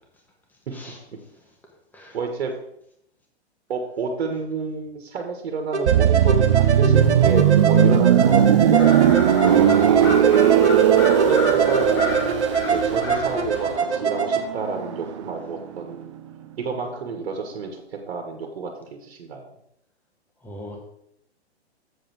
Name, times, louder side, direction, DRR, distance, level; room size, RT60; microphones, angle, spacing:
voice 1, 2.1-2.5 3.7-8.9 9.3-9.6 10.1-10.3 11.1-16.2 16.6-19.4, right 5 dB, 60° right, 3 dB, 1.7 m, -30 dB
sound 1, 5.7-14.4, right 5 dB, 85° right, 1.2 m, -24 dB
sound 2, 5.9-15.5 15.8-16.0, right 9 dB, 30° right, 0.3 m, -18 dB
sound 3, 8.8-13.8, left 2 dB, 30° left, 1.4 m, -32 dB
voice 2, 9.4-10.1 20.4-20.8, equal, 5° left, -1 dB, 1.5 m, -37 dB
7.6 x 4.2 x 6.8 m, 0.76 s
hypercardioid pair, 130°, 33 cm